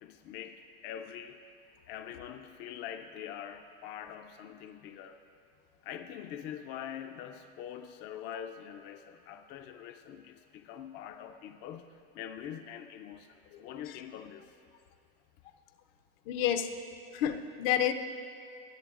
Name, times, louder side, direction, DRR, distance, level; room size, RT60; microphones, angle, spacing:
voice 1, 0.0-1.4 1.9-5.2 5.8-11.9 12.1-14.5, left 9 dB, 40° left, 6 dB, 0.4 m, -44 dB
voice 2, 13.5-14.0 16.3-16.7 17.1-17.9, left 10 dB, 70° left, 7 dB, 0.7 m, -30 dB
18.5 x 6.8 x 2.4 m, 2.4 s
supercardioid pair, 135°, 29 cm